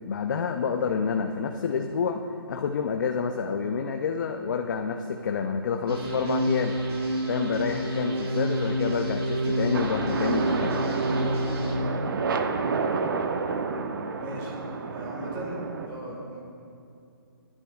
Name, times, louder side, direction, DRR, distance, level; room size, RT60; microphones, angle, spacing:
voice 1, 0.0-2.2 2.5-6.7 7.3-10.8, left 6 dB, 50° left, 4 dB, 0.6 m, -28 dB
sound 1, 5.9-11.8, right 1 dB, 85° right, 2.6 m, -28 dB
sound 2, 9.7-15.9, right 4 dB, 60° right, 0.9 m, -30 dB
voice 2, 11.1-11.8 14.2-14.6 14.9-16.4, right 1 dB, 20° right, -3 dB, 2.0 m, -38 dB
26.0 x 9.9 x 2.4 m, 2.5 s
hypercardioid pair, 160°, 12 cm